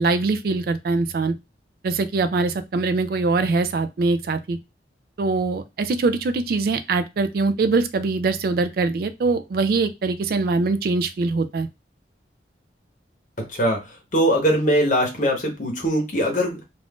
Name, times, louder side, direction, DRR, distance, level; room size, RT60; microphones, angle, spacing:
voice 1, 0.0-1.3 1.8-4.6 5.2-11.7, right 3 dB, 55° right, 9 dB, 0.3 m, -22 dB
voice 2, 13.4-13.8 14.1-16.6, equal, 45° left, 1 dB, 0.9 m, -21 dB
2.5 x 2.4 x 3.4 m, 0.23 s
head